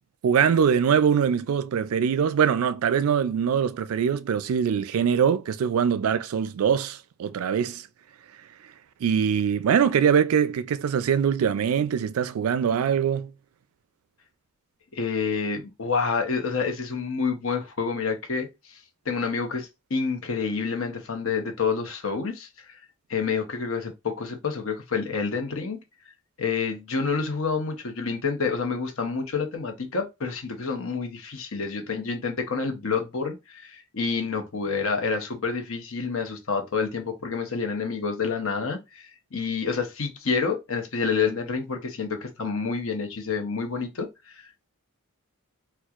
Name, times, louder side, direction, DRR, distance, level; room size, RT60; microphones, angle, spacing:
voice 1, 0.2-7.9 9.0-13.3, right 7 dB, 90° right, 0.4 m, -23 dB
voice 2, 14.9-18.8 19.1-22.8 23.1-25.8 26.4-44.7, left 5 dB, 70° left, 0.8 m, -28 dB
4.3 x 2.3 x 2.4 m
head